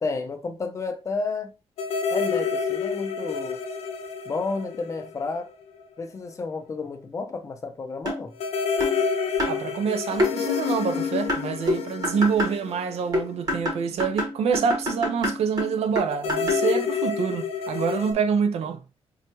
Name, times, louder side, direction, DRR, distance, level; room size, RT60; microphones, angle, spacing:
voice 1, 0.0-1.5 2.1-3.6 4.3-5.5 6.0-8.3, left 4 dB, 30° left, 0.5 m, -31 dB
sound 1, 1.8-5.5 5.8-5.9 8.4-13.8 16.1-18.1, left 6 dB, 70° left, 0.6 m, -28 dB
sound 2, 8.1-8.3 8.8-9.0 9.4-9.6 10.2-10.3 11.3-12.6 13.1-16.7, left 1 dB, 35° right, 1.2 m, -27 dB
voice 2, 9.5-18.8, right 6 dB, 70° right, 0.6 m, -26 dB
5.4 x 2.2 x 3.0 m
wide cardioid pair, 175°, 11 cm